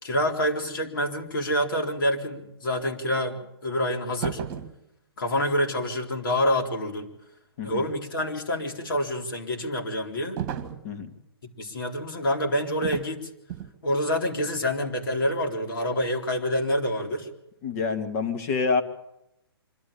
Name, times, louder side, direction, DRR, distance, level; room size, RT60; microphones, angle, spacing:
voice 1, 0.0-4.4 5.2-7.1 7.6-10.4 11.6-13.2 13.8-17.3, equal, 55° left, 3 dB, 4.0 m, -27 dB
sound 1, 4.2-4.8 10.4-10.9 12.8-13.1 13.5-13.8, right 10 dB, 30° right, 1.7 m, -33 dB
voice 2, 17.6-18.8, left 4 dB, 35° left, 7 dB, 2.4 m, -27 dB
25.5 x 12.5 x 8.7 m, 0.84 s
figure-of-eight pair, 130°, 13 cm